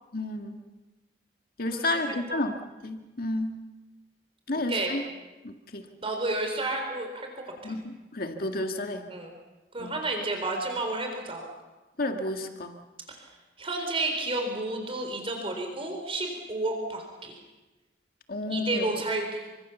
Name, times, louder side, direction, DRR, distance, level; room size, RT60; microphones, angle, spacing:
voice 1, 0.1-0.6 1.6-2.6 2.8-3.5 4.5-5.0 5.4-5.8 7.6-9.1 9.8-10.0 12.0-12.8 18.3-18.9, left 2 dB, 60° left, 4 dB, 2.0 m, -31 dB
voice 2, 4.5-4.9 6.0-7.8 9.1-9.3 9.7-11.5 13.1-13.3 13.6-17.4 18.5-19.4, right 2 dB, 35° right, 3 dB, 4.0 m, -31 dB
28.5 x 25.0 x 7.1 m, 1.1 s
head